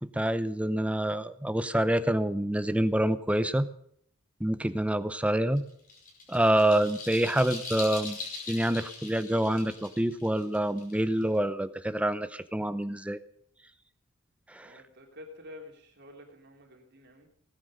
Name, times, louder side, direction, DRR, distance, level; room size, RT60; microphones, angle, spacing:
voice 1, 0.0-3.7 4.4-5.6 6.3-8.2 8.5-13.2 14.5-14.7, right 1 dB, 5° right, 13 dB, 0.7 m, -27 dB
sound 1, 5.6-11.4, left 3 dB, 45° left, 5.3 m, -41 dB
voice 2, 14.6-17.3, left 1 dB, 55° right, 1 dB, 3.4 m, -49 dB
18.5 x 10.0 x 6.5 m, 0.67 s
head